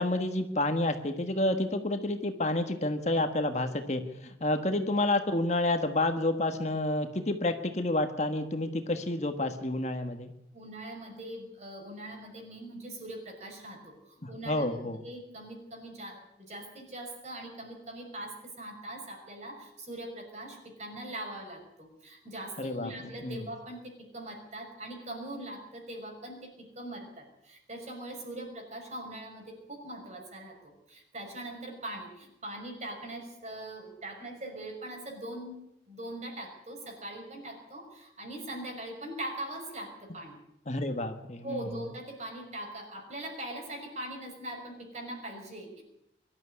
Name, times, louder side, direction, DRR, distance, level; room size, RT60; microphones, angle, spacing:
voice 1, 0.0-10.3 14.2-15.0 22.6-22.9 23.2-23.4 40.7-41.7, left 2 dB, 40° left, 7 dB, 1.5 m, -29 dB
voice 2, 10.5-14.8 15.0-35.6 35.9-40.4 41.4-45.8, right 1 dB, 40° right, 2 dB, 6.1 m, -41 dB
23.0 x 12.5 x 9.8 m, 0.83 s
head